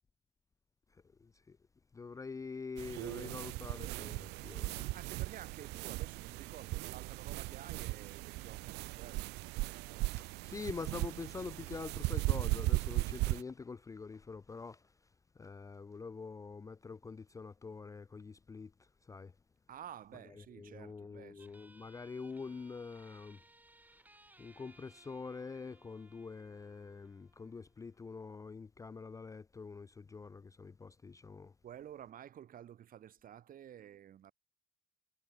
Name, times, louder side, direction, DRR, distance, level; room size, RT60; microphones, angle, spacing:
voice 1, 0.9-1.6 1.9-4.9 10.1-15.0 15.4-19.3 20.3-23.4 24.4-31.5, left 4 dB, 20° left, 0.5 m, -46 dB
sound 1, 2.8-13.4, right 22 dB, 90° right, 0.6 m, -37 dB
voice 2, 4.9-9.4 19.7-21.6 31.6-34.3, right 10 dB, 55° right, 5.5 m, -52 dB
sound 2, 21.4-28.4, right 2 dB, 10° right, 3.3 m, -64 dB
cardioid pair, 110°, 17 cm